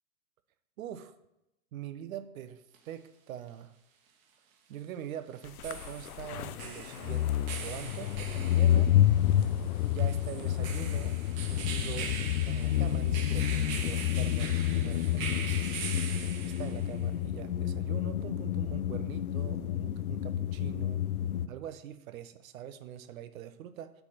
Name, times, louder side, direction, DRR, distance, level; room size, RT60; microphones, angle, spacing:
voice 1, 0.8-1.1 1.7-3.7 4.7-8.9 9.9-11.1 11.4-12.1 12.5-15.6 16.4-21.0 21.5-23.9, right 10 dB, 70° right, 11 dB, 0.7 m, -43 dB
sound 1, 2.7-2.8 5.4-17.0, right 6 dB, 45° right, 1.1 m, -42 dB
sound 2, 5.6-21.5, left 11 dB, 80° left, 0.5 m, -29 dB
8.2 x 3.5 x 5.6 m, 0.88 s
hypercardioid pair, 105°, 43 cm